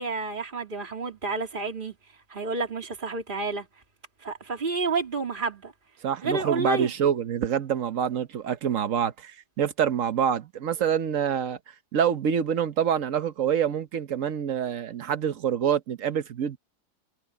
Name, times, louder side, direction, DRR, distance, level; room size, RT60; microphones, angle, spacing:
voice 1, 0.0-1.9 2.3-3.7 4.2-5.7 6.2-6.9, right 3 dB, 30° right, 3.0 m, -30 dB
voice 2, 6.0-11.6 11.9-16.6, right 8 dB, 55° right, 1.2 m, -26 dB
omnidirectional pair, 1.9 m